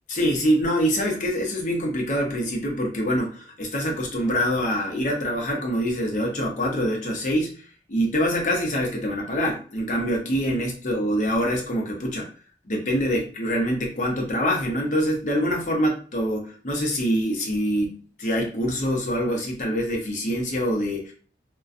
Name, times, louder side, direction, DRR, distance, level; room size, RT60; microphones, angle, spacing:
voice 1, 0.1-12.3 12.7-21.1, equal, 45° left, 0 dB, 0.6 m, -25 dB
2.4 x 2.2 x 2.4 m, 0.41 s
head